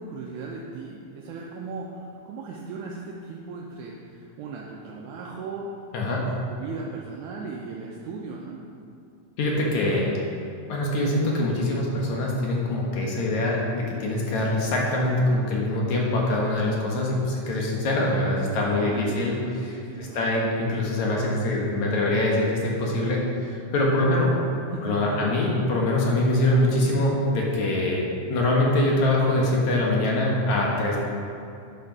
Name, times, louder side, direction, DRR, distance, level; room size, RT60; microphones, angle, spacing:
voice 1, 0.0-5.7 6.1-8.6 18.7-19.2 19.5-20.3 24.7-25.2, right 4 dB, 80° right, -2 dB, 2.2 m, -37 dB
voice 2, 9.4-10.1 10.7-19.7 20.0-24.3 24.8-31.0, left 1 dB, 70° left, -2 dB, 2.7 m, -24 dB
10.5 x 6.6 x 6.0 m, 2.5 s
omnidirectional pair, 3.5 m